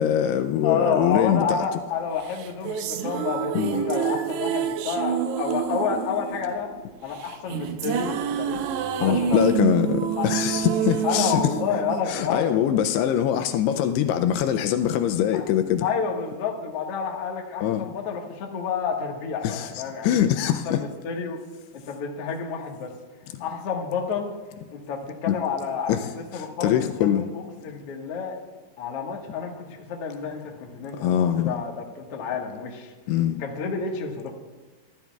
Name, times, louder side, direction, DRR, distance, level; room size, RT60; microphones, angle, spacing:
voice 1, 0.0-1.6 3.5-3.8 9.0-11.4 12.1-15.9 17.6-17.9 19.4-19.7 20.0-20.8 25.3-25.4 25.9-26.0 26.3-27.3 31.0-31.6 33.1-33.4, left 10 dB, 80° left, 2.5 m, -23 dB
voice 2, 0.6-6.7 7.0-8.6 9.0-9.4 10.2-10.3 11.0-12.6 15.3-15.4 15.8-20.1 20.5-21.4 21.7-22.9 23.4-24.3 24.7-28.4 28.8-32.9 33.4-34.3, left 6 dB, 55° left, 1.7 m, -29 dB
sound 1, 2.3-12.7, right 8 dB, 80° right, 2.7 m, -28 dB
23.0 x 14.5 x 2.4 m
omnidirectional pair, 4.8 m